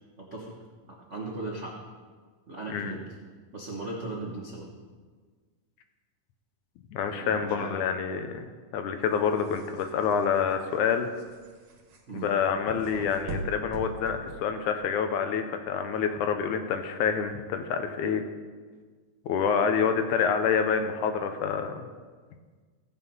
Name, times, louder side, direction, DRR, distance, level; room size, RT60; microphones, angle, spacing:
voice 1, 0.2-0.6 0.9-1.8 2.5-3.0 3.5-4.7 7.1-7.7 12.1-12.3, right 2 dB, 80° right, -2 dB, 0.6 m, -37 dB
voice 2, 6.9-8.5 8.7-11.1 12.1-18.2 19.3-21.9, left 6 dB, 75° left, 7 dB, 2.2 m, -27 dB
sound 1, 9.0-14.9, right 2 dB, 60° right, 2.3 m, -41 dB
16.0 x 6.4 x 5.5 m, 1.5 s
omnidirectional pair, 3.6 m